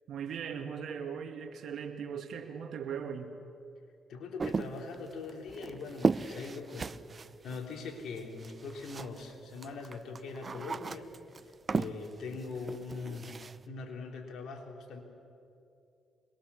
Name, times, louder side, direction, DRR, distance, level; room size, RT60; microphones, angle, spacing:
voice 1, 0.1-3.4, right 7 dB, 70° right, 2.1 m, -39 dB
voice 2, 4.1-7.0 7.4-11.1 11.7-13.4 13.7-15.0, left 4 dB, 70° left, 3.8 m, -41 dB
sound 1, 4.4-9.3 9.6-13.6, right 4 dB, 35° right, 0.6 m, -36 dB
24.5 x 21.5 x 7.1 m
cardioid pair, 85°, 0 cm